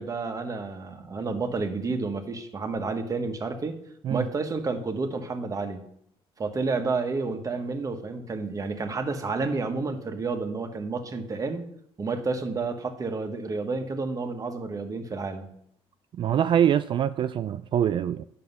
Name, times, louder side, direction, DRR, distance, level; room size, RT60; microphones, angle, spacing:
voice 1, 0.0-3.7 4.1-5.8 6.4-11.6 12.0-15.5, right 3 dB, 30° right, 1.4 m, -30 dB
voice 2, 16.2-18.2, right 9 dB, 45° right, 0.3 m, -24 dB
9.3 x 6.7 x 5.5 m
cardioid pair, 110°, 11 cm